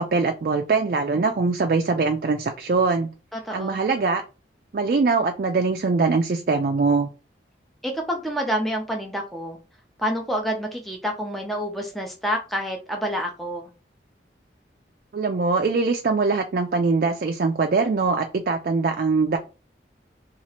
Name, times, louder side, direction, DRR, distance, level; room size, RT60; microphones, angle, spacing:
voice 1, 0.0-3.1 3.5-4.2 4.7-7.1 15.1-19.4, right 4 dB, 50° right, 4 dB, 0.3 m, -22 dB
voice 2, 3.3-3.8 7.8-9.6 10.0-13.7, equal, ahead, 1 dB, 0.5 m, -28 dB
2.9 x 2.4 x 4.2 m, 0.32 s
head